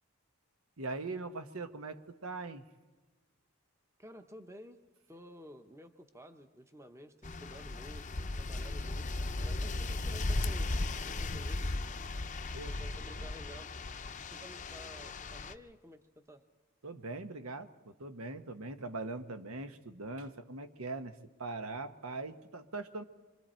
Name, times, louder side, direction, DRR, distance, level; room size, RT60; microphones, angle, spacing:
voice 1, 0.8-2.6 12.5-12.7 13.2-13.3 16.8-21.1 21.4-23.0, right 3 dB, 75° right, 9 dB, 1.1 m, -41 dB
voice 2, 4.0-4.8 5.1-11.7 12.5-13.7 14.3-16.0 16.3-16.4, equal, 15° right, 7 dB, 0.9 m, -52 dB
Parking Lot Ambient, 7.2-15.5, left 2 dB, 35° left, 0.7 m, -36 dB
26.5 x 24.0 x 4.4 m, 1.3 s
head